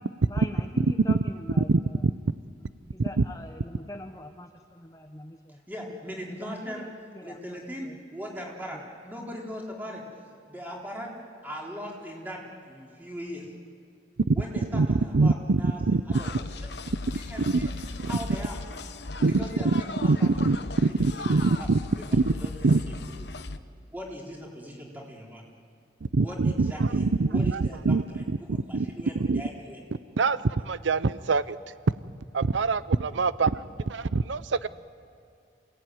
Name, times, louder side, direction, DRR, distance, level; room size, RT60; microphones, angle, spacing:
voice 1, 0.2-2.0 2.9-5.6 6.4-6.9 7.1-7.6 7.8-7.9, left 1 dB, 20° left, 5 dB, 0.9 m, -42 dB
voice 2, 5.5-6.9 7.2-10.0 10.5-11.1 11.4-13.5 14.3-15.8 16.1-16.7 17.1-18.6 19.2-21.7 22.0-23.3 23.9-25.4 26.2-29.8, equal, 10° right, -2 dB, 4.1 m, -40 dB
voice 3, 15.1-15.6 15.9-16.0 19.2-19.3 20.1-20.6 21.0-21.5 22.1-22.2 22.6-22.8 26.1-28.0 28.5-28.9 29.3-29.4 30.2-30.4 30.7-31.6 32.3-33.6 33.9-34.7, right 3 dB, 80° right, 15 dB, 0.6 m, -24 dB
sound 1, 16.1-23.6, left 2 dB, 60° left, 1.0 m, -38 dB
28.0 x 18.0 x 9.4 m, 2.5 s
head